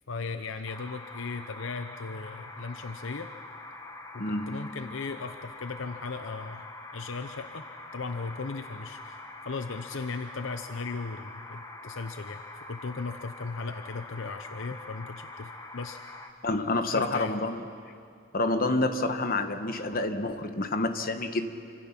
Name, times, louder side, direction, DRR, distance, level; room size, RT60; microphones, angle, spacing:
voice 1, 0.1-3.3 4.1-6.7 6.9-7.6 7.9-16.0 16.8-17.4, left 4 dB, 65° left, 8 dB, 0.8 m, -37 dB
sound 1, 0.7-16.3, left 2 dB, 15° left, 1.4 m, -44 dB
voice 2, 4.2-4.8 16.4-17.6 18.3-21.5, left 2 dB, 45° left, 7 dB, 1.3 m, -28 dB
29.0 x 25.0 x 6.0 m, 2.4 s
head